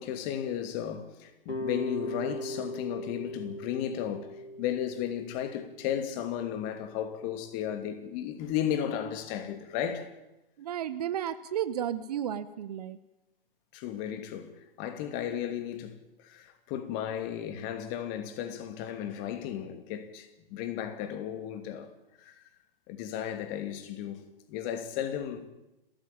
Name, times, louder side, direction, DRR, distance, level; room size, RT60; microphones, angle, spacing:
voice 1, 0.0-10.1 13.7-21.9 22.2-22.5 22.9-24.2 24.5-25.4, left 10 dB, 30° left, 2.7 m, -34 dB
sound 1, 1.5-6.6, left 1 dB, 75° left, 4.3 m, -39 dB
voice 2, 10.6-13.0, right 10 dB, 40° right, 1.2 m, -33 dB
30.0 x 14.0 x 9.0 m
figure-of-eight pair, 120°, 29 cm